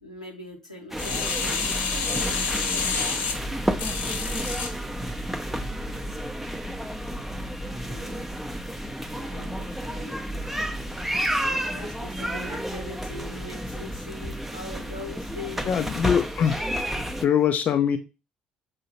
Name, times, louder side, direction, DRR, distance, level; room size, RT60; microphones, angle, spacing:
voice 1, 0.0-3.2 7.9-8.3 9.1-10.2 11.5-15.8, left 1 dB, 90° left, -2 dB, 1.0 m, -42 dB
sound 1, 0.9-17.3, equal, 5° right, 0.6 m, -31 dB
sound 2, 1.0-4.7 5.3-5.4, left 5 dB, 60° left, 0.8 m, -28 dB
voice 2, 15.7-16.6 17.2-18.0, left 8 dB, 40° left, 8 dB, 0.4 m, -22 dB
6.9 x 2.8 x 2.8 m, 0.28 s
figure-of-eight pair, 55°, 4 cm